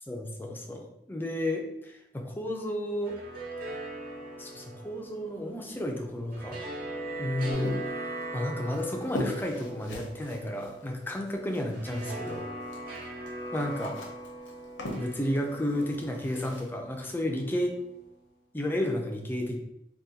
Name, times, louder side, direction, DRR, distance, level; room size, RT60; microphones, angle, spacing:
voice 1, 0.1-3.2 4.4-6.6 7.2-7.8 8.3-12.5 13.5-14.0 15.0-17.7 18.5-19.6, left 1 dB, 10° left, 2 dB, 0.4 m, -32 dB
sound 1, 2.9-18.1, right 1 dB, 50° right, 0.7 m, -40 dB
sound 2, 7.5-12.4 12.7-16.7, left 1 dB, 85° left, 0.7 m, -41 dB
3.6 x 2.3 x 2.7 m, 0.80 s
head